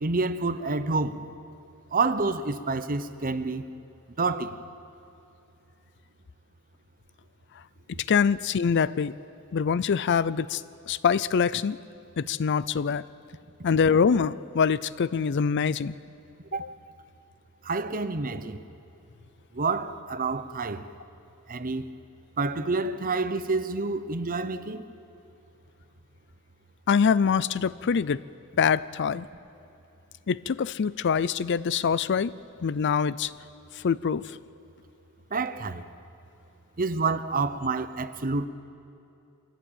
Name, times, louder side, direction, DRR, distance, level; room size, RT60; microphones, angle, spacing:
voice 1, 0.0-1.2 1.9-3.7 4.2-4.6 7.9-8.0 16.5-16.6 17.6-18.6 19.5-20.9 21.5-21.9 22.4-24.8 35.3-35.9 36.8-38.5, right 3 dB, 40° right, 0.9 m, -28 dB
voice 2, 7.9-9.1 9.5-10.6 10.9-11.8 12.2-13.0 13.6-16.0 16.6-16.7 26.9-28.2 28.6-29.3 30.3-32.3 32.6-33.3 33.7-34.4, left 6 dB, 55° left, 0.4 m, -24 dB
24.0 x 16.0 x 8.9 m
head